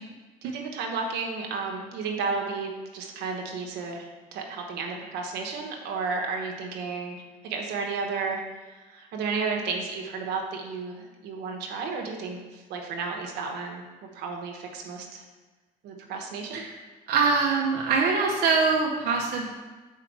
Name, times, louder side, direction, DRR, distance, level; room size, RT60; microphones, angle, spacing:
voice 1, 0.4-15.2 15.8-16.6, right 4 dB, 85° right, 2 dB, 1.1 m, -33 dB
voice 2, 17.1-19.5, right 4 dB, 65° right, -2 dB, 0.8 m, -24 dB
5.8 x 4.7 x 4.6 m, 1.3 s
cardioid pair, 110°, 17 cm